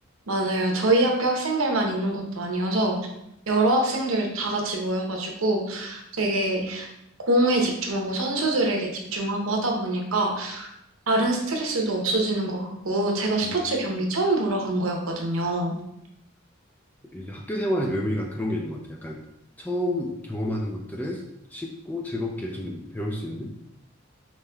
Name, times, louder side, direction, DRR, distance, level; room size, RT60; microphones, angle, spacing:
voice 1, 0.3-3.0 3.5-6.9 7.3-10.7 11.1-15.7, right 2 dB, 90° right, 1 dB, 0.8 m, -25 dB
voice 2, 17.1-19.2 19.6-21.2 21.5-23.5, left 1 dB, 10° left, 0 dB, 0.3 m, -30 dB
5.3 x 3.0 x 2.2 m, 0.81 s
head